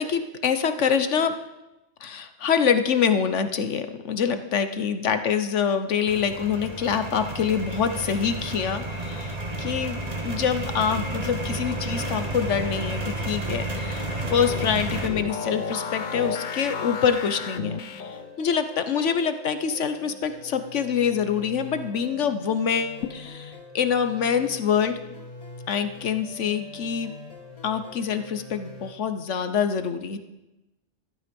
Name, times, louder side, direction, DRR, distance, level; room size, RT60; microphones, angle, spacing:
voice 1, 0.0-1.3 2.0-25.0 25.7-27.1 27.6-30.2, left 7 dB, 70° left, 10 dB, 1.3 m, -25 dB
sound 1, 6.1-15.1, right 2 dB, 30° right, 1.8 m, -31 dB
sound 2, 11.6-28.9, left 2 dB, 30° left, 2.1 m, -44 dB
sound 3, 13.9-18.4, left 5 dB, 45° left, 0.7 m, -33 dB
14.5 x 12.0 x 5.3 m, 1.0 s
omnidirectional pair, 1.3 m